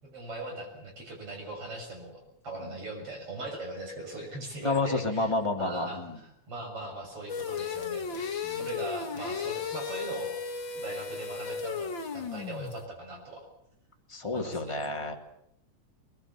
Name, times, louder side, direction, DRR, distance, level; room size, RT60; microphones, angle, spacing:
voice 1, 0.0-10.3 10.7-13.4 14.2-14.8, right 2 dB, 50° right, 2 dB, 7.5 m, -40 dB
voice 2, 4.6-6.2 8.4-8.7 14.1-15.1, left 2 dB, 10° left, 1 dB, 2.6 m, -30 dB
sound 1, 7.3-12.9, left 6 dB, 45° left, 2.5 m, -35 dB
21.5 x 21.5 x 8.8 m, 0.75 s
omnidirectional pair, 3.4 m